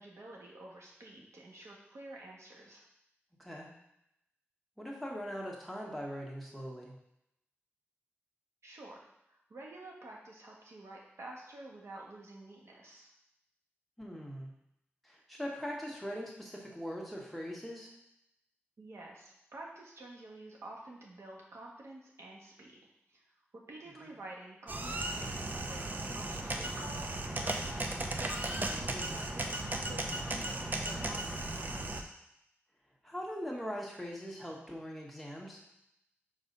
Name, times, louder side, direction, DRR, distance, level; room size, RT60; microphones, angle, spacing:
voice 1, 0.0-2.8 8.6-13.1 18.8-22.7 23.1-23.2 23.7-27.8 28.7-32.0, right 2 dB, 85° right, -2 dB, 1.5 m, -50 dB
voice 2, 3.4-3.7 4.8-6.9 14.0-14.5 15.0-17.9 24.0-24.1 28.6-28.9 33.0-35.6, equal, ahead, -3 dB, 1.5 m, -41 dB
sound 1, 24.7-32.0, right 2 dB, 40° right, 0.7 m, -36 dB
5.4 x 4.0 x 5.4 m, 0.81 s
wide cardioid pair, 80°, 5 cm